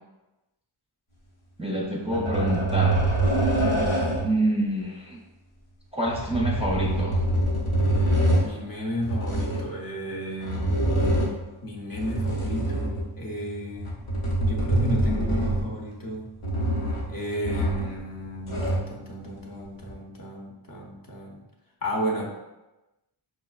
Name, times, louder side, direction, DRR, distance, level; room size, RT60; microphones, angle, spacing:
voice 1, 1.6-3.0 4.2-5.2 5.9-7.2, right 1 dB, 15° right, -3 dB, 0.5 m, -27 dB
sound 1, 2.1-4.4 6.0-8.5 9.0-9.7 10.4-11.5 11.9-13.2 13.8-15.8 16.4-17.1 17.4-18.0 18.3-18.9 19.8-19.9, right 1 dB, 85° left, 0.9 m, -25 dB
voice 2, 8.4-10.7 11.6-14.0 14.4-16.2 17.1-21.4 21.8-22.3, equal, 45° left, -2 dB, 0.8 m, -33 dB
5.1 x 2.1 x 2.3 m, 1.0 s
wide cardioid pair, 45°, 49 cm